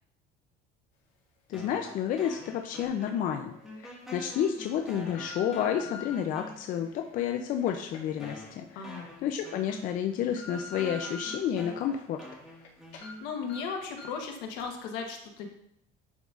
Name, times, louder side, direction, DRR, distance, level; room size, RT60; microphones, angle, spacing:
voice 1, 1.5-8.8 9.2-12.2, left 9 dB, 50° left, 4 dB, 0.5 m, -30 dB
sound 1, 1.5-3.4 3.6-6.9 7.6-7.7 8.2-13.6, left 1 dB, ahead, 1.7 m, -46 dB
sound 2, 2.8-2.9 3.6-3.9 4.5-6.1 6.8-9.1 9.5-9.6 10.0-11.3 11.8-12.7 12.9-13.1 13.5-13.6 14.0-14.2 14.6-14.7, left 2 dB, 70° left, 2.1 m, -46 dB
voice 2, 8.7-9.1 13.2-15.5, left 5 dB, 85° left, 3 dB, 1.1 m, -36 dB
10.5 x 3.9 x 2.4 m, 0.74 s
cardioid pair, 140°, 18 cm